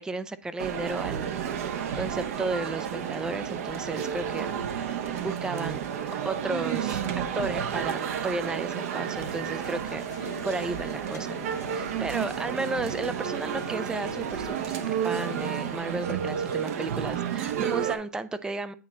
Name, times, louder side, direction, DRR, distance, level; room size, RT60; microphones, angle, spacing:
voice 1, 0.0-1.3 1.6-4.5 5.2-5.8 6.2-11.4 11.7-18.7, right 3 dB, 5° right, 13 dB, 0.4 m, -34 dB
Male speech man speaking, 0.6-18.0, right 8 dB, 55° right, 0.9 m, -31 dB
sound 1, 9.1-15.7, left 10 dB, 70° left, 0.5 m, -46 dB
8.4 x 3.1 x 4.0 m, 0.38 s
hypercardioid pair, 120°, 10 cm